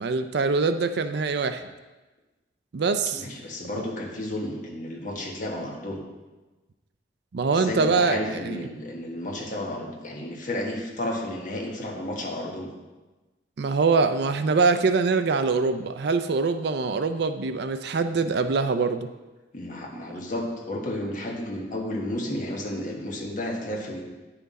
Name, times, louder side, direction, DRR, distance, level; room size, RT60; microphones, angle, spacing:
voice 1, 0.0-1.7 2.7-3.3 7.3-8.6 13.6-19.1, right 4 dB, 60° right, 10 dB, 0.4 m, -24 dB
voice 2, 3.1-6.0 7.5-12.7 19.5-24.0, left 1 dB, 45° left, -1 dB, 1.4 m, -32 dB
9.3 x 5.8 x 4.1 m, 1.2 s
head